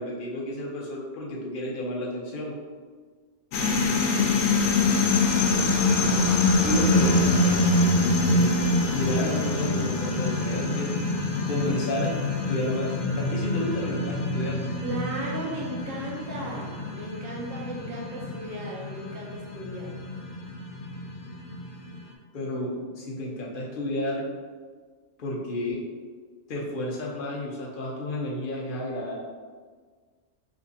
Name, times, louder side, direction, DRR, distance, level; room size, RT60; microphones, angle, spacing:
voice 1, 0.0-2.6 5.9-6.3 6.6-7.6 8.3-8.6 8.9-10.9 11.5-12.2 12.5-14.6 22.3-24.2 25.2-25.8 26.5-29.2, left 1 dB, 55° left, -2 dB, 0.7 m, -31 dB
sound 1, 3.5-22.0, left 2 dB, 85° left, 1.0 m, -25 dB
voice 2, 14.8-20.0, right 1 dB, 75° right, -3 dB, 1.1 m, -36 dB
3.4 x 2.9 x 2.6 m, 1.5 s
omnidirectional pair, 1.4 m